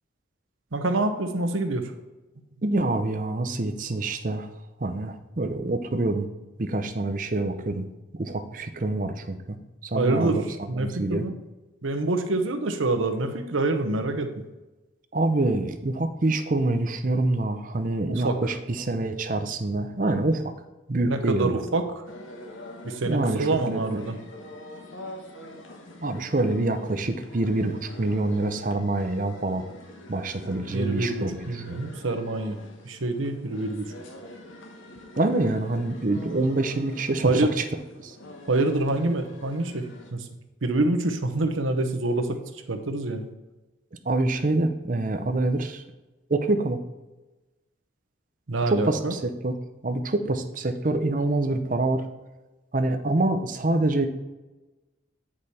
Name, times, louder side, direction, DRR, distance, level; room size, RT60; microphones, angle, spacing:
voice 1, 0.7-1.8 9.9-10.4 10.7-11.3 11.8-14.3 18.1-18.4 21.1-21.8 22.8-24.2 30.7-32.6 32.8-33.8 37.2-37.5 38.5-39.9 40.1-40.2 40.6-42.4 42.7-43.3 48.5-49.1, right 2 dB, 90° right, 6 dB, 0.9 m, -26 dB
voice 2, 2.6-4.5 4.8-6.3 6.6-7.9 8.1-9.6 9.8-10.4 10.7-11.2 15.1-20.5 20.9-21.6 23.1-24.0 26.0-29.6 30.1-31.8 35.2-37.7 38.0-38.1 44.1-45.8 46.3-46.8 48.7-49.6 49.8-52.0 52.7-54.1, right 2 dB, 40° right, 7 dB, 0.6 m, -26 dB
sound 1, 22.0-40.1, left 1 dB, 85° left, 1.2 m, -44 dB
8.8 x 4.9 x 4.2 m, 1.1 s
head